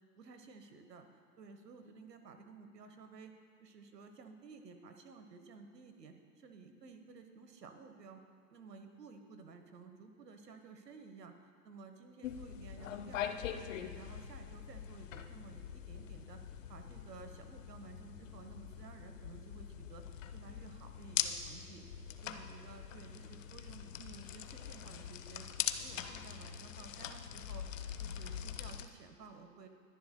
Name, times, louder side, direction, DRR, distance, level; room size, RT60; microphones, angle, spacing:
voice 1, 0.2-3.3 3.6-8.2 8.5-16.4 16.7-20.0 20.3-21.8 22.2-25.5 25.8-29.7, right 4 dB, 70° right, 7 dB, 1.3 m, -54 dB
sound 1, 12.2-28.9, left 9 dB, 50° left, 0.7 m, -43 dB
21.0 x 10.5 x 2.2 m, 2.1 s
figure-of-eight pair, 115°, 50 cm